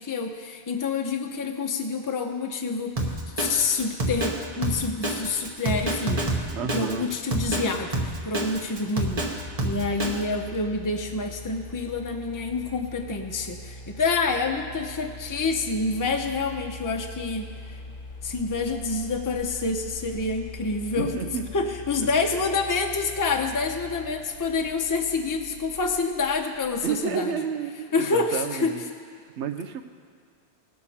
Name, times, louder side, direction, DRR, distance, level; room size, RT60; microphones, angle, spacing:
voice 1, 0.0-17.8 18.2-21.1 21.5-27.3 27.9-28.7, left 4 dB, 20° left, 3 dB, 0.7 m, -28 dB
Drum kit, 3.0-10.2, right 1 dB, 35° right, 1.2 m, -28 dB
voice 2, 6.5-7.1 20.9-21.7 22.0-22.1 26.8-28.8 29.4-29.8, right 6 dB, 80° right, 9 dB, 1.0 m, -31 dB
sound 1, 9.3-27.1, left 3 dB, 45° left, 1.0 m, -42 dB
19.5 x 6.5 x 4.3 m, 2.2 s
omnidirectional pair, 1.2 m